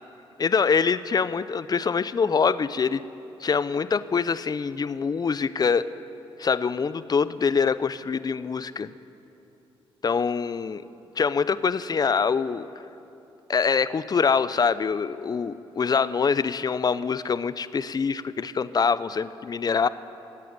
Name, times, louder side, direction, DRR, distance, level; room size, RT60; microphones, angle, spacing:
voice 1, 0.4-3.0 3.4-5.9 6.4-8.9 10.0-10.8 11.2-12.7 13.5-19.9, left 5 dB, 40° left, 16 dB, 0.6 m, -24 dB
16.0 x 8.4 x 9.4 m, 2.9 s
supercardioid pair, 60°, 11 cm